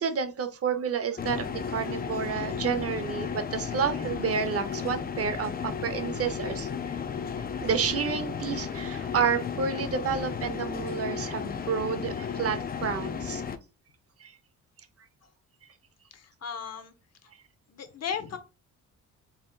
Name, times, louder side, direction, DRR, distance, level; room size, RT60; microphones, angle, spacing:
voice 1, 0.0-6.9 7.6-13.4 14.2-14.3, right 6 dB, 45° right, 9 dB, 0.7 m, -30 dB
sound 1, 1.2-13.6, left 6 dB, 30° left, 0.4 m, -34 dB
voice 2, 16.4-16.9 17.7-18.4, left 7 dB, 50° left, 8 dB, 0.8 m, -35 dB
4.2 x 3.6 x 2.3 m, 0.29 s
cardioid pair, 100°, 33 cm